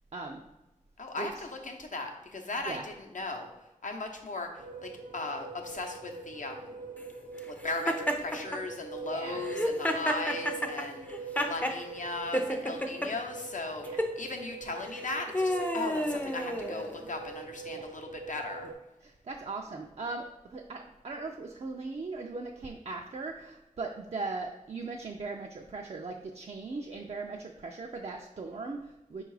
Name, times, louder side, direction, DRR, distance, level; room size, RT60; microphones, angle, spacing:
voice 1, 0.1-0.4 1.2-1.3 2.7-2.8 9.1-9.4 13.8-14.0 17.7-17.9 19.0-29.2, right 3 dB, 50° right, 2 dB, 0.4 m, -39 dB
voice 2, 1.0-3.5 3.8-6.8 7.5-18.7, left 3 dB, 70° left, 3 dB, 0.7 m, -38 dB
sound 1, 4.6-18.7, right 4 dB, 75° right, 0.7 m, -43 dB
Laughter, 7.9-8.6 9.4-11.8 12.3-13.1 13.8-14.1 14.9-17.1, equal, 10° left, 0.4 m, -30 dB
4.5 x 2.4 x 4.7 m, 1.0 s
wide cardioid pair, 65°, 14 cm